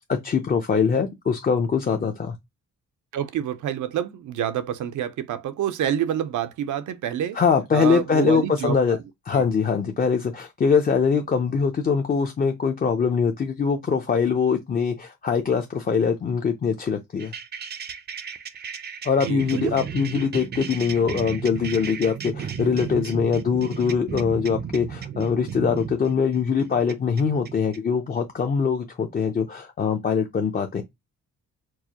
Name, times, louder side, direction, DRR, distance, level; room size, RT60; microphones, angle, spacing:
voice 1, 0.1-2.3 7.3-9.0 9.3-17.3 19.0-30.8, left 6 dB, 30° left, 0.5 m, -23 dB
voice 2, 3.1-7.4 7.7-8.8 9.3-9.5 19.2-19.7, right 10 dB, 80° right, 0.6 m, -27 dB
sound 1, 17.2-27.8, right 7 dB, 35° right, 0.5 m, -34 dB
4.6 x 2.1 x 2.8 m
cardioid pair, 120°, 30 cm